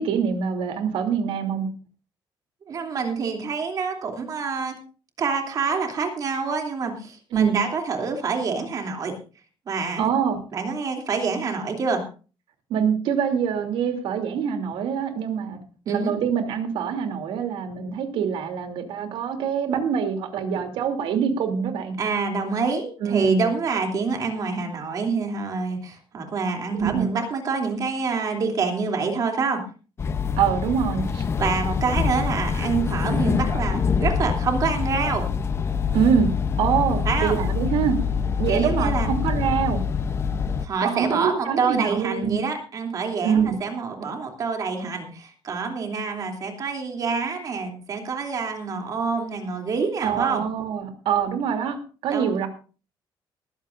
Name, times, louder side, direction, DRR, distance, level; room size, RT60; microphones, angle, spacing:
voice 1, 0.0-1.7 7.3-7.6 10.0-10.4 12.7-15.6 15.9-22.0 23.0-23.4 26.7-27.1 30.4-31.2 35.9-36.3 36.6-38.0 38.4-39.8 40.8-42.4 43.2-43.6 50.0-52.5, right 7 dB, 85° right, 5 dB, 3.0 m, -24 dB
voice 2, 2.7-4.7 5.2-9.2 9.7-10.1 10.5-12.1 15.9-16.1 22.0-29.6 31.4-35.3 37.0-37.4 38.5-39.1 40.6-50.4 52.1-52.3, right 4 dB, 45° right, 3 dB, 3.0 m, -26 dB
sound 1, 30.0-40.7, left 6 dB, 30° left, 0.7 m, -25 dB
21.0 x 14.5 x 2.6 m, 0.36 s
cardioid pair, 160°, 9 cm